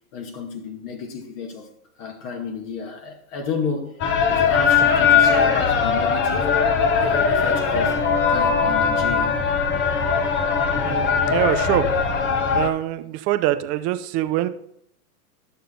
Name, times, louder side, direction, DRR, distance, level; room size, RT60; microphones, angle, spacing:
voice 1, 0.1-1.7 2.0-4.0 4.3-6.5 7.0-8.0 8.3-9.4, left 5 dB, 50° left, 2.2 m, -31 dB
sound 1, 4.0-12.7, left 6 dB, 25° left, 1.0 m, -20 dB
voice 2, 10.8-11.9 12.5-14.5, right 14 dB, 20° right, 0.3 m, -24 dB
11.5 x 6.7 x 3.9 m
hypercardioid pair, 120°, 46 cm